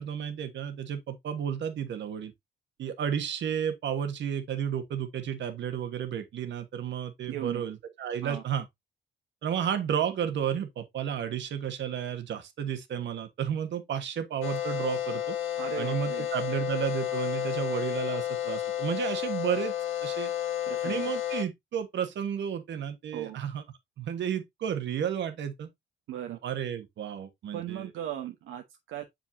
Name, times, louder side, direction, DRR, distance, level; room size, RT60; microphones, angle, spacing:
voice 1, 0.0-2.3 2.8-8.6 9.4-15.4 15.8-19.7 20.0-20.3 20.8-23.6 24.0-25.7 26.3-27.9, right 9 dB, 65° right, 1.3 m, -32 dB
voice 2, 7.3-7.6 8.2-8.4 15.6-16.3 20.6-21.1 23.1-23.4 26.1-26.4 27.5-29.0, right 11 dB, 85° right, 0.9 m, -37 dB
sound 1, 14.4-21.4, left 11 dB, 80° left, 1.5 m, -31 dB
6.9 x 5.2 x 2.6 m
cardioid pair, 90°, 20 cm